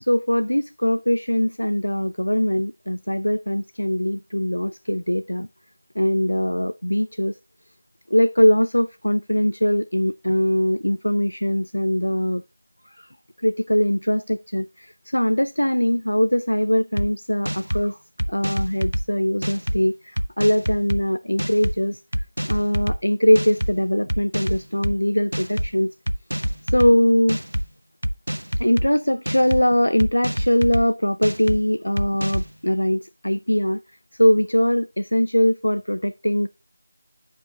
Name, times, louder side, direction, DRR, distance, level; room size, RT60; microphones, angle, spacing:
voice 1, 0.1-5.5 6.0-7.4 8.1-12.4 13.4-18.0 18.3-22.0 22.5-25.9 26.7-27.4 28.6-33.8 34.2-36.5, equal, 85° left, 0.4 m, -21 dB
sound 1, 17.0-17.1 17.5-17.8 18.2-19.0 19.4-19.8 20.2-21.0 21.4-21.8 22.1-23.0 23.4-23.7 24.1-24.9 25.3-25.7 26.1-26.9 27.3-27.7 28.0-28.9 29.3-29.6 30.0-30.8 31.2-31.6 32.0-32.5, equal, 85° right, 0.4 m, -25 dB
13.5 x 5.3 x 2.7 m
figure-of-eight pair, 165°, 0 cm